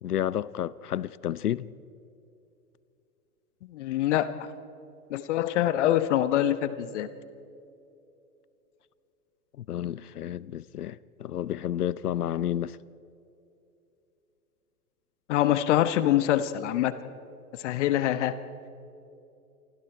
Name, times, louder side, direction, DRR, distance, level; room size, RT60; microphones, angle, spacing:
voice 1, 0.0-1.7 9.6-12.8, left 11 dB, 75° left, 0.7 m, -31 dB
voice 2, 3.7-4.5 5.1-7.1 15.3-16.9 17.5-18.4, left 12 dB, 50° left, 1.1 m, -25 dB
28.5 x 24.5 x 4.5 m
figure-of-eight pair, 105°, 47 cm